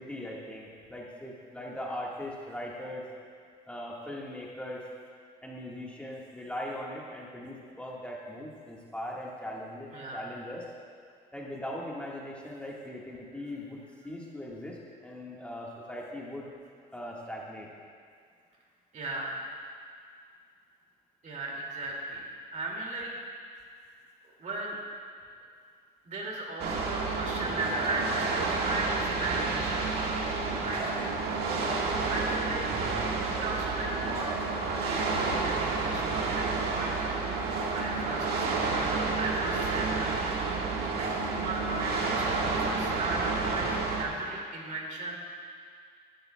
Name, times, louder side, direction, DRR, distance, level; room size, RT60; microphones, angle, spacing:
voice 1, 0.0-3.1 3.6-4.8 5.4-10.7 11.3-14.8 15.0-16.5 16.9-17.7 33.3-33.5, left 1 dB, 5° left, -4 dB, 1.7 m, -40 dB
voice 2, 9.9-10.3 18.9-19.4 21.2-22.2 22.5-23.2 24.4-24.8 26.0-31.0 32.1-32.7 33.2-37.0 37.7-38.5 38.7-40.3 40.6-45.2, right 2 dB, 45° right, -2 dB, 2.5 m, -36 dB
sound 1, 26.6-44.0, right 4 dB, 70° right, 1.7 m, -30 dB
18.0 x 11.5 x 2.3 m, 2.2 s
cardioid pair, 110°, 17 cm